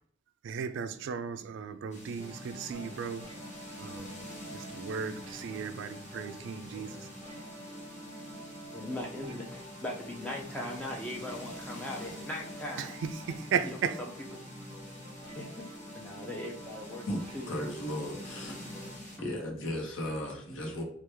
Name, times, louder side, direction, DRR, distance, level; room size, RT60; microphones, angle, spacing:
voice 1, 0.4-3.3 3.8-4.2 4.5-7.1 12.8-14.0, right 6 dB, 65° right, 0.3 m, -36 dB
sound 1, 1.9-19.2, left 1 dB, 35° left, 1.2 m, -48 dB
sound 2, 2.2-19.0, right 1 dB, 30° right, 0.9 m, -47 dB
voice 2, 8.7-12.9 13.6-13.8 15.3-17.1 17.3-17.5 18.4-18.9 19.1-19.3, left 1 dB, 5° left, 0.4 m, -40 dB
voice 3, 17.1-18.7 19.2-20.8, left 1 dB, 70° left, 0.9 m, -36 dB
3.0 x 2.3 x 3.3 m
head